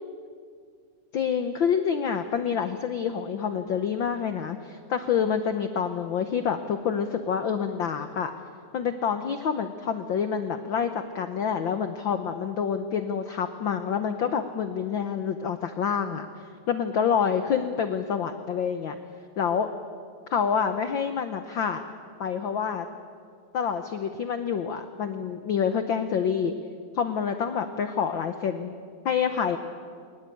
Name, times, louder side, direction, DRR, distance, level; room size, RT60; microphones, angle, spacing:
voice 1, 1.1-8.3 8.7-16.3 16.7-18.9 19.4-19.7 20.3-21.8 22.2-22.9 23.5-26.5 26.9-28.7 29.0-29.6, left 7 dB, 85° left, 8 dB, 1.0 m, -27 dB
22.0 x 19.5 x 9.2 m, 2.2 s
omnidirectional pair, 3.5 m